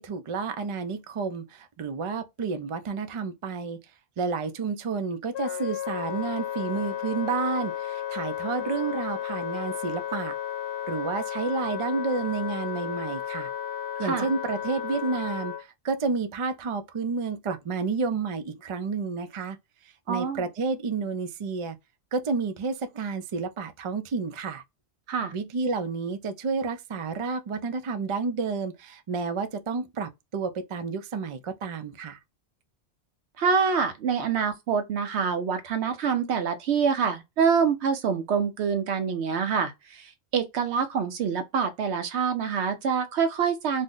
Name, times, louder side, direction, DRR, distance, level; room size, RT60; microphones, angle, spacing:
voice 1, 0.0-3.8 4.2-10.4 10.9-13.5 14.0-19.6 20.1-21.8 22.1-24.6 25.3-32.2, right 4 dB, 55° right, 0.3 m, -30 dB
Wind instrument woodwind instrument, 5.3-15.6, left 10 dB, 85° left, 0.9 m, -33 dB
voice 2, 20.1-20.4 25.1-25.3 33.4-43.8, right 6 dB, 80° right, 0.9 m, -26 dB
2.6 x 2.1 x 3.6 m
omnidirectional pair, 1.1 m